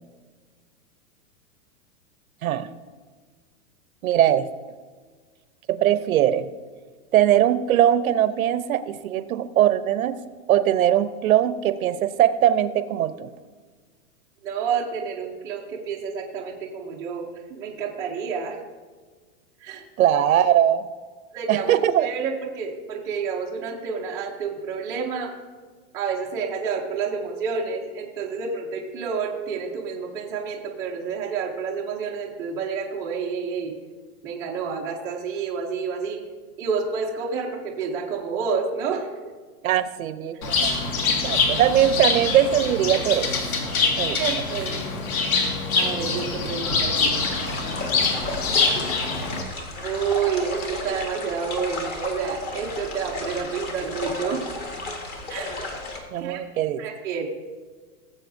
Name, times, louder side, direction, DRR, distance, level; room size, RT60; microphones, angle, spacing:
voice 1, 4.0-4.5 5.7-6.5 7.1-10.2 10.5-13.3 20.0-20.9 21.5-22.1 39.6-40.7 41.2-43.3 44.0-44.2 56.1-56.8, right 11 dB, 70° right, 13 dB, 0.8 m, -20 dB
voice 2, 14.4-18.6 19.6-19.8 21.3-25.3 25.9-33.7 34.2-36.2 36.6-39.1 44.1-44.7 45.8-47.2 49.8-54.4 55.3-55.6 56.2-56.4 56.8-57.3, right 6 dB, 10° right, -4 dB, 0.5 m, -29 dB
Bird, 40.4-49.4, left 4 dB, 70° left, 2.0 m, -24 dB
sound 1, 47.1-56.0, left 2 dB, 20° left, 1.1 m, -33 dB
19.0 x 7.7 x 2.6 m, 1.5 s
supercardioid pair, 160°, 44 cm